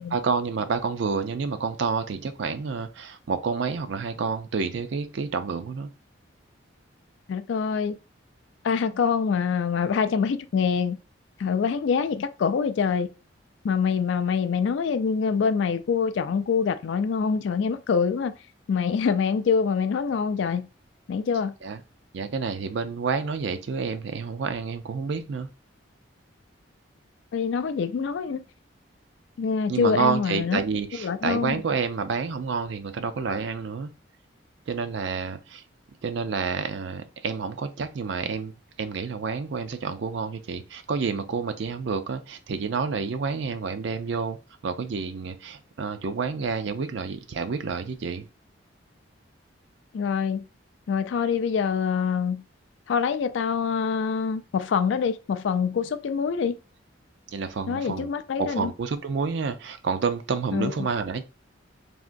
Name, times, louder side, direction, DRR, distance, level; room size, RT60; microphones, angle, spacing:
voice 1, 0.1-5.9 21.6-21.8 22.1-25.5 29.7-33.9 34.7-35.6 36.0-38.5 38.8-44.4 44.6-48.3 57.3-58.1 58.4-61.2, right 5 dB, 65° right, 0.4 m, -29 dB
voice 2, 7.3-8.0 8.6-11.0 11.4-13.1 13.6-18.3 18.7-20.7 21.1-21.5 27.3-28.4 29.4-30.6 31.0-31.6 49.9-50.4 50.9-52.4 52.9-56.6 57.7-58.7 60.5-60.9, left 6 dB, 65° left, 0.3 m, -25 dB
3.5 x 2.9 x 2.5 m
head